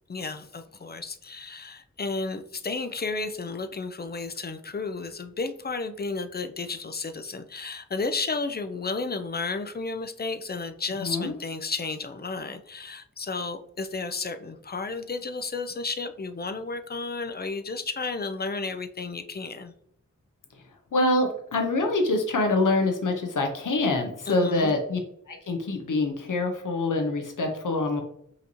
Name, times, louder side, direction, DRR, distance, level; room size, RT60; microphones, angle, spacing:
voice 1, 0.1-19.7 24.3-24.8, left 3 dB, 30° left, 9 dB, 0.4 m, -32 dB
voice 2, 11.0-11.3 20.9-25.0 25.3-28.0, left 2 dB, 80° left, 3 dB, 0.7 m, -25 dB
5.5 x 2.7 x 2.9 m, 0.69 s
wide cardioid pair, 50°, 31 cm